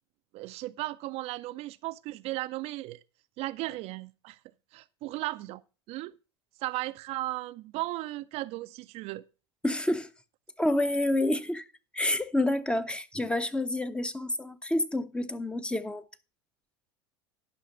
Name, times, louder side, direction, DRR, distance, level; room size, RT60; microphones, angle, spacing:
voice 1, 0.3-3.0 3.4-4.4 4.7-5.6 5.9-6.1 6.6-9.2, right 18 dB, 45° right, 0.5 m, -36 dB
voice 2, 9.6-10.1 10.6-11.7 11.9-16.0, left 1 dB, 5° left, 0.7 m, -28 dB
11.0 x 5.7 x 5.7 m
figure-of-eight pair, 75°, 14 cm